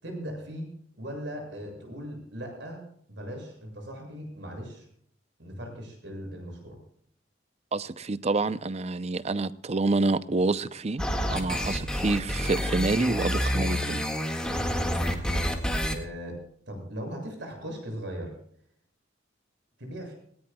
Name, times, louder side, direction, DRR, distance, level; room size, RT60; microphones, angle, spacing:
voice 1, 0.0-0.7 1.0-2.8 3.1-4.9 5.4-6.8 14.8-15.6 15.9-16.4 16.7-18.3 19.8-20.1, equal, 65° right, 6.8 m, -39 dB
voice 2, 7.7-11.0 11.3-14.0, right 3 dB, 35° right, 0.5 m, -27 dB
sound 1, 11.0-15.9, equal, 5° left, 1.8 m, -28 dB
19.5 x 18.0 x 2.3 m
head